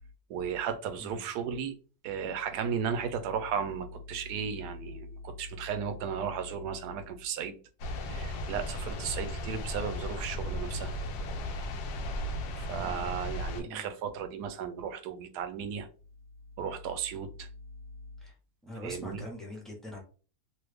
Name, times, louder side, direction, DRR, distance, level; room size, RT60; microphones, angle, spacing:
voice 1, 0.3-1.7 2.0-7.6 8.0-10.9 12.6-15.9 16.6-17.5 18.8-19.3, right 7 dB, 80° right, 9 dB, 1.1 m, -35 dB
voice 2, 1.0-1.3 12.8-13.1 13.6-13.9 18.2-18.3 18.6-20.0, left 1 dB, ahead, -2 dB, 0.6 m, -43 dB
sound 1, 7.8-13.6, left 1 dB, 90° left, 1.2 m, -36 dB
3.1 x 2.2 x 3.3 m, 0.37 s
omnidirectional pair, 1.7 m